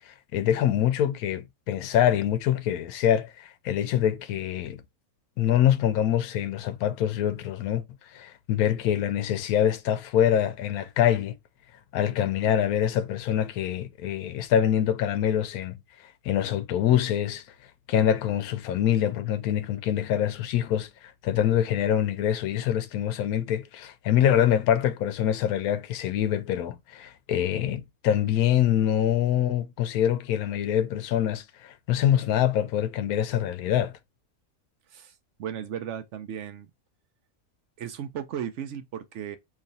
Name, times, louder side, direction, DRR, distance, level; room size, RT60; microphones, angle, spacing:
voice 1, 0.3-4.8 5.4-7.8 8.1-11.4 11.9-15.8 16.2-17.4 17.9-33.9, left 10 dB, 85° left, 1.1 m, -25 dB
voice 2, 35.4-36.7 37.8-39.4, right 9 dB, 65° right, 0.8 m, -35 dB
3.0 x 2.4 x 4.0 m
omnidirectional pair, 1.5 m